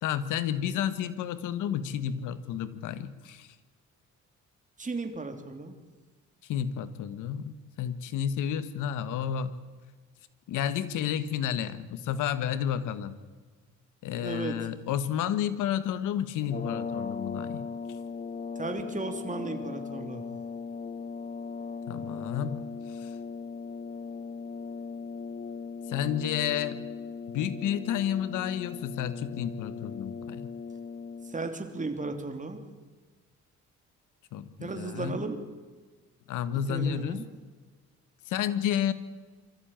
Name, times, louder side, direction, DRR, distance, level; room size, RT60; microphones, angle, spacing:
voice 1, 0.0-3.5 6.5-9.5 10.5-13.2 14.0-17.7 21.9-22.7 22.9-23.1 25.9-26.8 27.3-30.4 34.3-35.2 36.3-37.2 38.3-38.9, left 9 dB, 90° left, 14 dB, 1.5 m, -31 dB
voice 2, 4.8-5.7 14.2-14.6 18.5-20.2 31.2-32.6 34.6-35.4 36.7-37.3, right 3 dB, 25° right, 6 dB, 3.1 m, -35 dB
sound 1, 16.4-31.6, left 5 dB, 30° left, 0.7 m, -38 dB
23.5 x 14.5 x 9.0 m, 1.4 s
cardioid pair, 90°, 30 cm